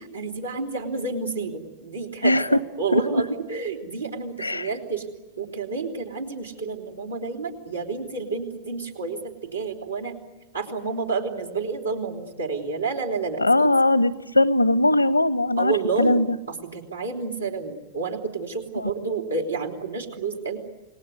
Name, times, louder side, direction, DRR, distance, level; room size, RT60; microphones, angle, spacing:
voice 1, 0.0-5.0 5.4-10.2 10.5-13.7 15.6-16.2 16.7-20.6, right 4 dB, 85° right, -2 dB, 3.4 m, -30 dB
voice 2, 2.9-3.2 4.4-4.7 13.4-16.3, left 1 dB, 85° left, 20 dB, 0.8 m, -20 dB
28.5 x 19.5 x 9.6 m, 1.1 s
figure-of-eight pair, 90°, 0 cm